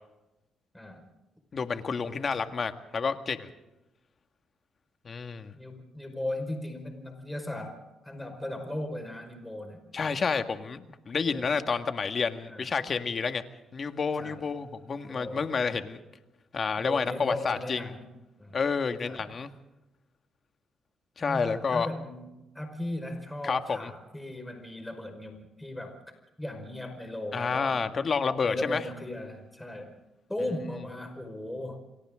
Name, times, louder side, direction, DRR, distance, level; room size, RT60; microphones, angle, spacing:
voice 1, 1.5-3.5 5.0-5.5 9.9-13.4 13.7-16.0 16.5-17.9 18.5-19.5 21.2-21.9 23.4-23.9 27.3-28.8, left 5 dB, 45° left, 7 dB, 1.9 m, -29 dB
voice 2, 5.5-10.2 11.1-11.5 12.4-12.7 14.2-14.4 15.1-15.8 16.8-18.1 18.4-18.6 19.0-19.3 21.2-22.3 22.5-26.0 26.4-27.8 28.4-29.9 30.3-31.8, left 1 dB, 10° left, 5 dB, 5.1 m, -37 dB
29.5 x 24.0 x 3.8 m, 0.97 s
cardioid pair, 90°, 0 cm